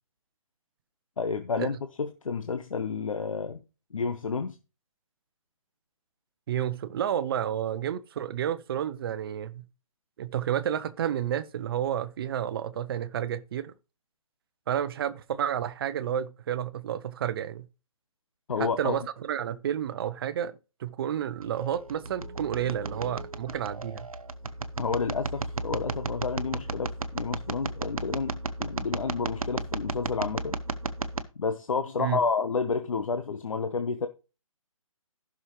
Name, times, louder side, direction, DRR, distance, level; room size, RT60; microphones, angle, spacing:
voice 1, 1.2-3.6 3.9-4.6 18.5-19.0 24.8-30.6 31.4-34.1, left 5 dB, 70° left, 1.0 m, -30 dB
voice 2, 6.5-9.7 10.2-13.7 14.7-17.7 18.6-24.1 32.0-32.2, right 10 dB, 45° right, 0.8 m, -31 dB
sound 1, 21.4-31.2, right 3 dB, 85° right, 1.1 m, -34 dB
15.5 x 6.2 x 3.1 m
figure-of-eight pair, 140°, 18 cm